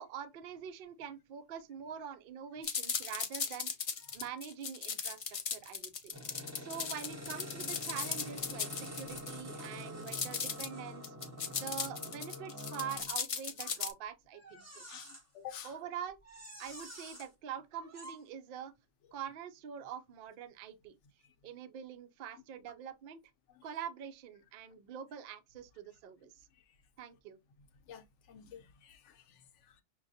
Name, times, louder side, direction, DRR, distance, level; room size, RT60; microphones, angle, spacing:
voice 1, 0.0-11.1 11.5-14.8 15.6-16.2 16.6-18.7 19.1-21.0 21.4-23.2 23.6-26.5 27.0-27.4, right 8 dB, 60° right, 0.6 m, -45 dB
sound 1, 2.6-9.3 10.1-10.7 11.0-13.9, left 6 dB, 55° left, 0.3 m, -37 dB
sound 2, 6.1-13.1 14.3-15.2 15.6-15.8 16.2-17.3 17.7-18.2, equal, 15° right, 0.9 m, -47 dB
voice 2, 14.9-15.7 23.5-23.7 27.9-29.8, left 10 dB, 70° left, 0.9 m, -50 dB
5.8 x 2.3 x 2.6 m
omnidirectional pair, 1.3 m